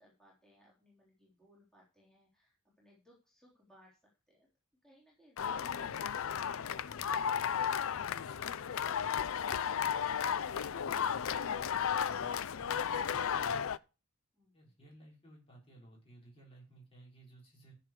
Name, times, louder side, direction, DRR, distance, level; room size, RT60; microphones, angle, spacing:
voice 1, 0.0-4.0 4.3-4.5 4.8-10.9 14.3-14.7, equal, 5° left, -5 dB, 3.7 m, -66 dB
sound 1, 5.4-13.8, left 8 dB, 65° left, 0.4 m, -34 dB
voice 2, 12.0-13.6 14.5-17.7, right 1 dB, 25° left, -2 dB, 5.1 m, -58 dB
13.5 x 6.8 x 4.8 m, 0.31 s
head